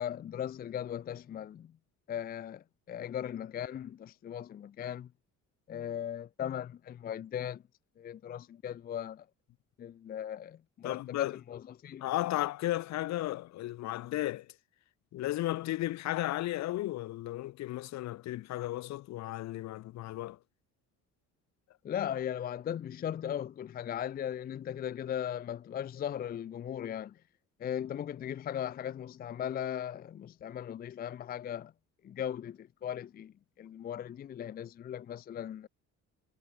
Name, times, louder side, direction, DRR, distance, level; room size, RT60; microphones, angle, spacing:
voice 1, 0.0-1.7 2.1-5.1 5.7-7.6 8.0-9.3 9.8-12.1 21.8-27.2 27.6-31.7 32.0-35.7, left 9 dB, 30° left, 0.5 m, -38 dB
voice 2, 10.8-11.4 12.0-14.5 15.1-20.4, left 15 dB, 60° left, 0.9 m, -34 dB
cardioid pair, 175°, 31 cm